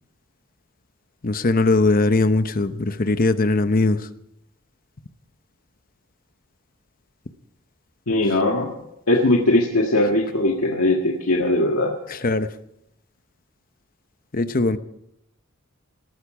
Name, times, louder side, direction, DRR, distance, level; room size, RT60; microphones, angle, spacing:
voice 1, 1.2-4.1 12.1-12.5 14.3-14.8, left 2 dB, 40° left, 11 dB, 0.8 m, -20 dB
voice 2, 8.1-8.7 9.1-11.9, left 1 dB, 85° left, 0 dB, 1.8 m, -20 dB
18.5 x 13.5 x 4.9 m, 0.82 s
head